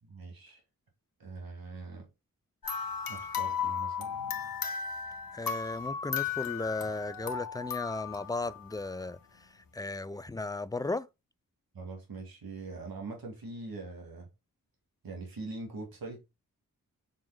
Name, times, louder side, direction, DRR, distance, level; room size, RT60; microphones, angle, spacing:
voice 1, 0.0-0.6 1.2-2.1 3.1-4.6 11.7-14.3 15.0-16.3, right 3 dB, 85° right, 2.3 m, -43 dB
sound 1, 2.6-9.1, left 7 dB, 80° left, 1.3 m, -35 dB
voice 2, 5.3-11.1, left 2 dB, 10° left, 0.4 m, -36 dB
7.7 x 5.5 x 2.2 m
wide cardioid pair, 105°, 34 cm